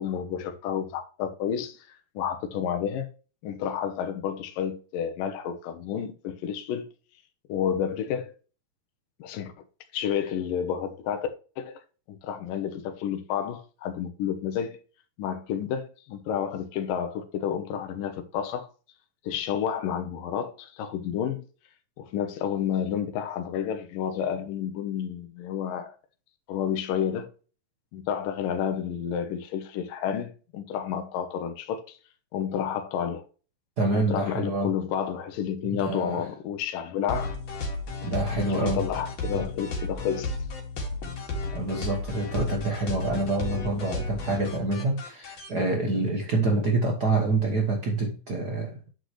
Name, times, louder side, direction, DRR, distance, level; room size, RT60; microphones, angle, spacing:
voice 1, 0.0-3.1 3.4-6.9 7.5-8.3 9.2-9.5 9.9-11.3 11.6-11.8 12.1-14.8 15.2-18.7 19.2-21.5 22.0-26.0 26.5-27.3 27.9-32.0 32.3-33.2 33.9-37.4 38.3-40.4 42.3-42.5, left 8 dB, 75° left, 2.8 m, -30 dB
voice 2, 33.8-34.7 35.6-36.2 38.0-38.9 39.3-39.5 41.5-48.8, right 2 dB, 70° right, 0.9 m, -27 dB
sound 1, 37.1-45.5, left 2 dB, 50° left, 3.1 m, -33 dB
9.8 x 6.4 x 3.2 m
omnidirectional pair, 4.1 m